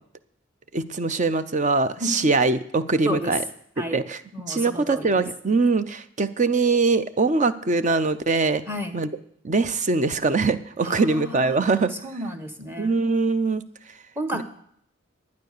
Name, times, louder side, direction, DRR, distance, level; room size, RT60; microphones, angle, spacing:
voice 1, 0.7-3.4 3.8-4.2 4.5-8.6 8.9-9.1 9.4-11.9 12.8-13.6 14.3-14.4, right 3 dB, 40° right, 12 dB, 0.6 m, -22 dB
voice 2, 4.3-5.2 8.7-9.0 10.8-12.9 14.2-14.4, equal, 10° right, 8 dB, 1.2 m, -32 dB
12.0 x 9.5 x 6.7 m, 0.66 s
head